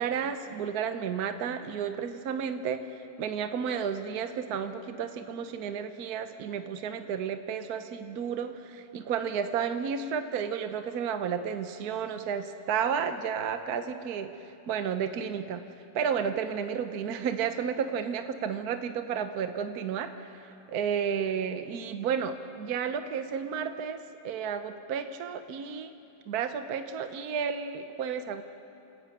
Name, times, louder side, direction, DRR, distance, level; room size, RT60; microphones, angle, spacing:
voice 1, 0.0-15.6 15.9-25.9 26.3-28.4, right 7 dB, 65° right, 9 dB, 1.3 m, -32 dB
29.0 x 14.0 x 9.0 m, 2.7 s
omnidirectional pair, 1.9 m